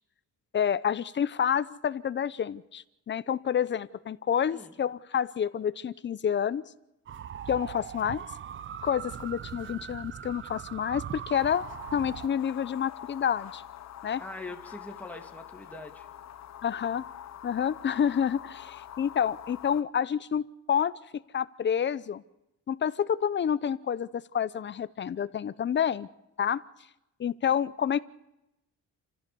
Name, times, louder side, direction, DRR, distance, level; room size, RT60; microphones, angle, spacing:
voice 1, 0.5-6.6 7.5-8.2 8.8-11.7 11.9-13.6 14.0-14.2 16.6-17.0 17.4-21.0 21.3-22.2 22.7-26.1 26.4-26.6 27.2-28.0, left 8 dB, 35° left, 17 dB, 0.7 m, -28 dB
sound 1, 7.1-12.3, right 9 dB, 40° right, 0.7 m, -40 dB
sound 2, 11.3-19.8, left 11 dB, 55° left, 1.1 m, -45 dB
voice 2, 14.2-16.1, left 2 dB, 5° left, 2 dB, 2.6 m, -43 dB
28.5 x 15.0 x 6.9 m, 0.92 s
cardioid pair, 155°, 32 cm